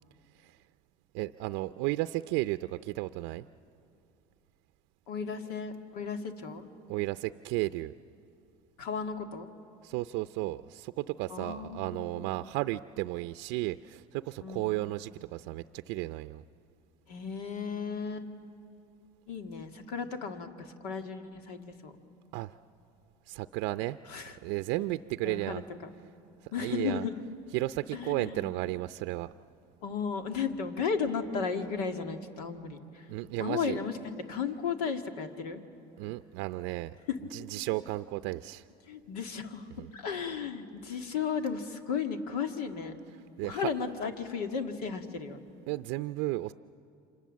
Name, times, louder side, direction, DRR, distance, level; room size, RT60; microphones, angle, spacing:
voice 1, 1.1-3.5 6.9-7.9 9.8-16.4 22.3-22.5 23.3-24.0 24.4-25.6 26.4-27.1 27.5-29.3 33.1-33.8 36.0-37.0 37.3-38.6 39.8-39.9 43.4-43.7 45.7-46.5, right 18 dB, 70° right, 11 dB, 0.5 m, -33 dB
voice 2, 5.1-6.7 8.8-9.5 11.3-12.4 14.4-14.8 17.1-18.3 19.3-21.9 24.1-24.4 25.2-25.6 26.5-27.2 27.9-28.6 29.8-33.1 33.4-35.6 37.1-37.2 38.9-43.0 43.4-45.4, left 6 dB, 90° left, 6 dB, 2.0 m, -35 dB
28.5 x 25.5 x 7.4 m, 2.6 s
supercardioid pair, 100°, 19 cm